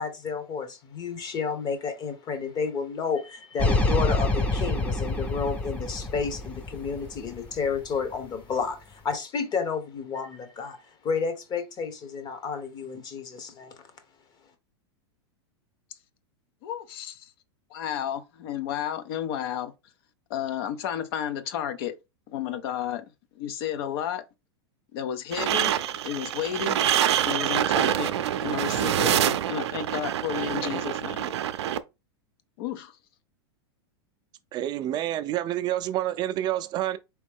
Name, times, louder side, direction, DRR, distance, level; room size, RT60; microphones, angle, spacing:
voice 1, 0.0-10.8 11.0-13.8, left 5 dB, 30° left, 1.0 m, -31 dB
sound 1, 3.6-7.9, left 2 dB, 10° left, 0.7 m, -27 dB
voice 2, 16.6-17.3 17.7-19.7 20.3-21.9 22.3-23.1 23.3-24.2 24.9-25.7 26.0-26.8 27.2-28.1 28.4-31.3 32.6-32.9, left 10 dB, 60° left, 0.7 m, -32 dB
sound 2, 25.3-31.8, right 11 dB, 80° right, 0.5 m, -26 dB
voice 3, 34.5-37.0, right 13 dB, 30° right, 0.4 m, -28 dB
4.2 x 3.0 x 3.5 m
supercardioid pair, 130°, 14 cm